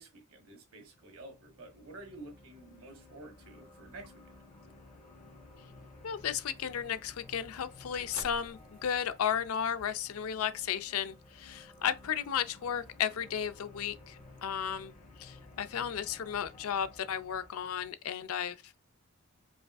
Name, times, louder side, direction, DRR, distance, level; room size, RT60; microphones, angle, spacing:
voice 1, 0.0-4.4, right 2 dB, 90° right, 1.3 m, -50 dB
sound 1, 0.9-17.9, left 2 dB, 35° left, 0.6 m, -55 dB
voice 2, 6.0-14.9 15.2-18.7, left 8 dB, 90° left, 0.4 m, -34 dB
sound 2, 6.1-13.4, right 4 dB, 75° right, 0.5 m, -57 dB
4.8 x 2.5 x 2.3 m
head